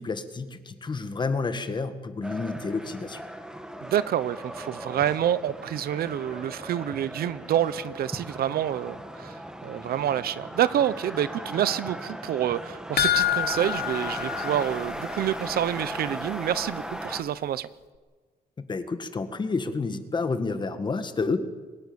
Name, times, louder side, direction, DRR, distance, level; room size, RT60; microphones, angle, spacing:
voice 1, 0.0-3.2 18.7-21.4, left 4 dB, 30° left, 10 dB, 1.8 m, -30 dB
sound 1, 2.2-17.2, right 1 dB, 5° right, 1.8 m, -37 dB
voice 2, 3.8-17.7, right 10 dB, 75° right, 16 dB, 1.0 m, -28 dB
sound 2, 13.0-15.5 15.8-15.9 16.3-16.4, left 12 dB, 80° left, 1.4 m, -28 dB
23.5 x 20.0 x 7.1 m, 1.4 s
cardioid pair, 140°, 16 cm